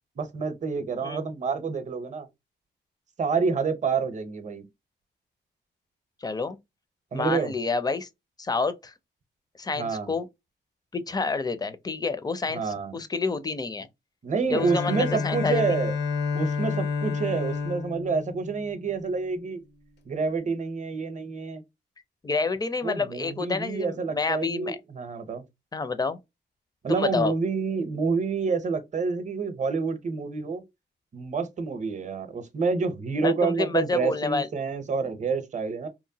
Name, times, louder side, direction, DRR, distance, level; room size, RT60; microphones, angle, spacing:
voice 1, 0.2-2.3 3.2-4.6 7.1-7.5 9.8-10.1 12.5-12.9 14.2-15.9 16.3-19.6 20.0-21.6 22.8-25.4 26.8-30.6 31.1-35.9, right 5 dB, 40° right, 0.7 m, -28 dB
voice 2, 6.2-6.6 7.1-8.1 8.4-8.9 9.6-10.3 10.9-13.9 14.5-15.6 22.2-24.8 25.7-26.2 26.9-27.3 33.2-34.5, left 4 dB, 20° left, 0.4 m, -28 dB
Bowed string instrument, 14.5-19.3, left 5 dB, 70° left, 0.6 m, -30 dB
2.9 x 2.1 x 2.7 m
cardioid pair, 100°, 19 cm